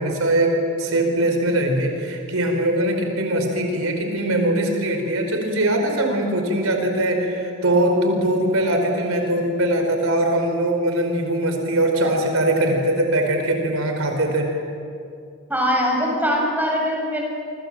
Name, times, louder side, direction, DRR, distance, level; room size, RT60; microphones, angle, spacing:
voice 1, 0.0-14.5, right 1 dB, 75° right, 3 dB, 4.6 m, -21 dB
voice 2, 15.5-17.2, equal, 10° right, -1 dB, 7.2 m, -21 dB
28.5 x 26.0 x 7.7 m, 2.5 s
head